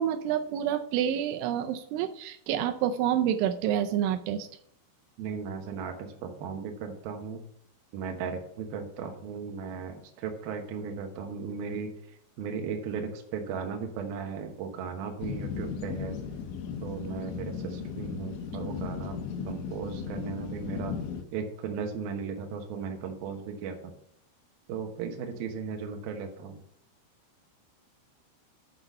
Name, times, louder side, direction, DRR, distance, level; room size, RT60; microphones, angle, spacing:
voice 1, 0.0-4.5, right 10 dB, 85° right, 8 dB, 3.0 m, -28 dB
voice 2, 5.2-7.4 7.9-11.9 12.4-16.2 16.8-19.2 19.4-21.0 21.3-23.9 24.7-26.6, right 6 dB, 70° right, 4 dB, 2.5 m, -36 dB
sound 1, 15.2-21.2, left 6 dB, 85° left, 3.2 m, -36 dB
7.7 x 6.2 x 5.4 m, 0.71 s
omnidirectional pair, 5.4 m